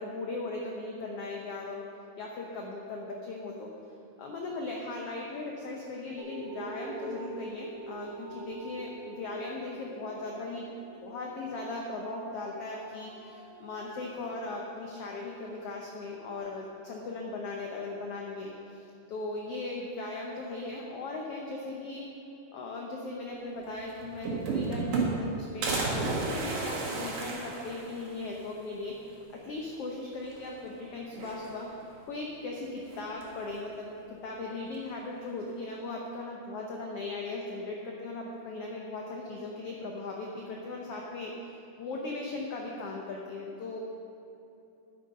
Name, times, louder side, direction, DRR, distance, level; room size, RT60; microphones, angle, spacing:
voice 1, 0.0-1.8 2.2-3.7 4.2-10.7 11.0-22.0 22.5-29.2 29.4-31.7 32.0-43.8, left 2 dB, 80° left, -1 dB, 1.3 m, -38 dB
sound 1, 6.2-15.1 15.7-15.8, right 2 dB, 30° right, 1.3 m, -45 dB
sound 2, 23.6-23.7 24.0-25.3 25.6-28.2 28.6-28.7 29.0-29.1 30.2-30.7 31.1-31.8 32.9-33.4, right 3 dB, 75° right, 3.2 m, -32 dB
10.5 x 9.2 x 5.2 m, 2.8 s
omnidirectional pair, 3.9 m